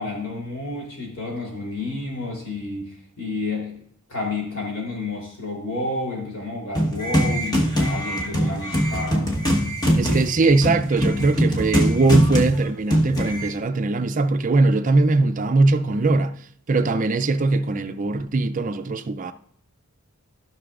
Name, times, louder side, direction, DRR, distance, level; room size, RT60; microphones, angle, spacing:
voice 1, 0.0-3.8 4.1-9.3, left 2 dB, 65° left, 3.4 m, -30 dB
sound 1, 6.7-13.5, equal, 20° left, 1.3 m, -22 dB
voice 2, 10.0-16.3 16.7-19.3, right 3 dB, 35° right, 0.5 m, -20 dB
15.5 x 6.0 x 2.5 m
head